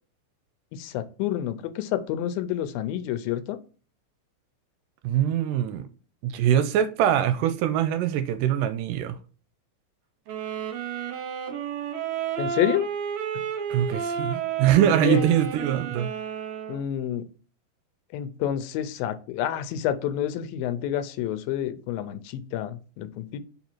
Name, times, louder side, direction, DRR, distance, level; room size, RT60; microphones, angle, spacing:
voice 1, 0.7-3.6 12.4-12.9 15.0-15.3 16.7-17.3 18.1-23.4, left 11 dB, 85° left, 2.5 m, -29 dB
voice 2, 5.0-5.9 6.2-9.2 13.7-16.1, right 10 dB, 80° right, 2.1 m, -23 dB
sound 1, 10.3-16.8, right 8 dB, 65° right, 1.8 m, -31 dB
5.5 x 4.9 x 4.5 m
omnidirectional pair, 4.0 m